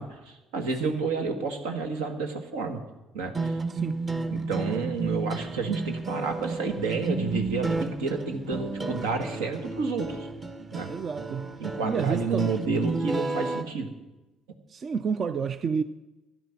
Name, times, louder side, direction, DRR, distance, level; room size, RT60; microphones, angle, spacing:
voice 1, 0.0-2.8 3.1-3.6 4.3-10.3 10.7-10.9 11.6-13.9, right 4 dB, 85° right, 5 dB, 1.6 m, -30 dB
sound 1, 3.3-13.6, right 3 dB, 30° right, 1.3 m, -32 dB
voice 2, 10.9-11.5 11.8-12.8 14.7-15.8, right 6 dB, 45° right, 12 dB, 0.5 m, -30 dB
12.5 x 10.5 x 5.7 m, 1.1 s
hypercardioid pair, 65°, 0 cm